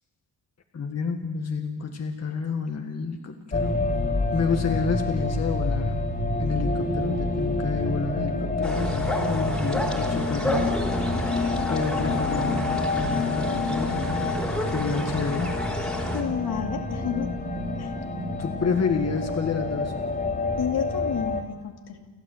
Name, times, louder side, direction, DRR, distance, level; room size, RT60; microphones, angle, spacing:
voice 1, 0.7-3.9 4.3-6.0 6.4-10.7 11.7-14.2 14.7-15.6 18.4-19.9, left 5 dB, 40° left, 4 dB, 1.9 m, -29 dB
sound 1, 3.5-21.4, left 2 dB, 25° left, 3.2 m, -27 dB
sound 2, 8.6-16.2, equal, ahead, 3.4 m, -32 dB
voice 2, 16.1-17.3 17.8-17.9 20.6-22.1, left 8 dB, 75° left, 2 dB, 2.6 m, -30 dB
29.5 x 12.5 x 8.0 m, 1.2 s
wide cardioid pair, 150°, 39 cm